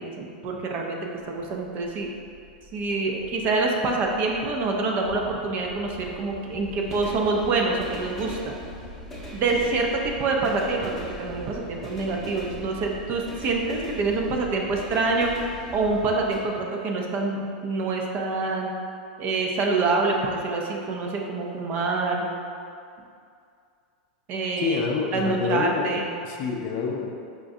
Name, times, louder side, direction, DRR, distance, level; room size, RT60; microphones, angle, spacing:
voice 1, 0.0-2.1 2.7-8.5 9.3-15.3 15.7-18.7 19.2-22.4 24.3-24.8 25.1-26.1, right 3 dB, 40° right, 0 dB, 0.5 m, -26 dB
sound 1, 1.2-16.4, left 1 dB, 5° left, 0.8 m, -41 dB
voice 2, 24.6-27.1, left 4 dB, 45° left, 1 dB, 0.4 m, -27 dB
5.0 x 2.3 x 2.6 m, 2.3 s
hypercardioid pair, 120°, 5 cm